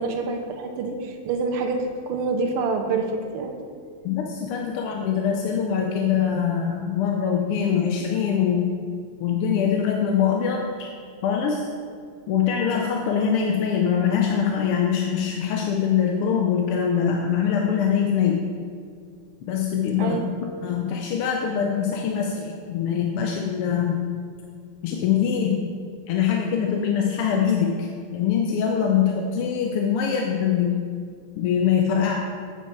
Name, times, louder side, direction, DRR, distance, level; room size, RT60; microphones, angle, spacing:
voice 1, 0.0-3.6 20.0-20.3, right 4 dB, 85° right, 4 dB, 1.7 m, -27 dB
voice 2, 4.0-8.7 9.2-10.9 11.2-11.7 12.3-18.5 19.5-20.3 20.6-24.0 24.8-25.7 26.1-30.8 31.4-32.1, left 7 dB, 85° left, 1 dB, 1.6 m, -23 dB
8.9 x 6.2 x 4.5 m, 2.2 s
omnidirectional pair, 2.4 m